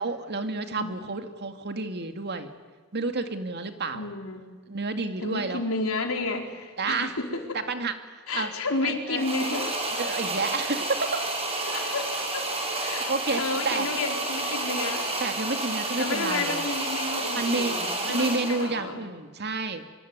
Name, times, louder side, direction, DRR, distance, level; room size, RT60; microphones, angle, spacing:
voice 1, 0.0-2.5 2.9-4.1 4.7-5.6 6.8-7.1 7.7-8.5 8.8-9.2 10.0-11.0 13.1-13.9 15.2-16.7 17.3-17.8 18.0-19.9, right 3 dB, 50° right, 7 dB, 2.4 m, -30 dB
voice 2, 0.8-1.1 3.9-4.5 5.2-7.6 8.3-9.8 11.7-12.5 12.7-15.1 16.0-19.0, left 3 dB, 80° left, 3 dB, 4.4 m, -31 dB
sound 1, 9.2-18.7, right 2 dB, 30° right, 6.7 m, -30 dB
24.5 x 24.5 x 9.7 m, 1.4 s
head